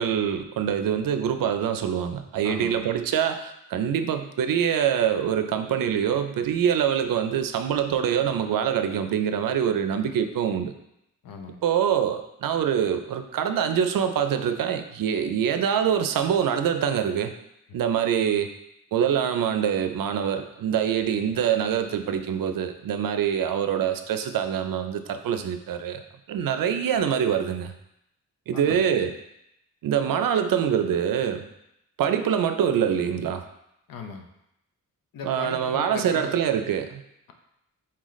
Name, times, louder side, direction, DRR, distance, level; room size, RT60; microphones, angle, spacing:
voice 1, 0.0-10.7 11.6-17.3 17.7-18.5 18.9-26.0 26.3-27.7 28.5-29.1 29.8-31.4 32.0-33.4 35.2-37.0, right 8 dB, 85° right, 8 dB, 0.5 m, -25 dB
voice 2, 2.4-2.8 11.2-11.6 28.5-28.9 33.9-34.3 35.1-36.4, left 5 dB, 85° left, 4 dB, 0.7 m, -37 dB
4.2 x 3.9 x 3.1 m, 0.81 s
wide cardioid pair, 135°, 33 cm